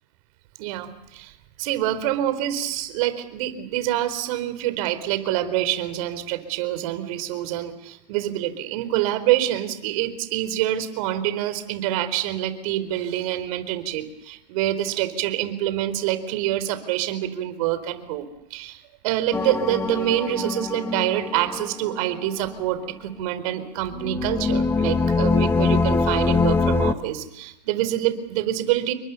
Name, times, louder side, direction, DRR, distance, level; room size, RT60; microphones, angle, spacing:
voice 1, 0.6-28.9, right 13 dB, 55° right, 12 dB, 4.0 m, -26 dB
sound 1, 19.3-22.2 23.9-26.9, left 4 dB, 10° left, 1.2 m, -23 dB
29.5 x 23.5 x 7.0 m, 0.82 s
hypercardioid pair, 120°, 21 cm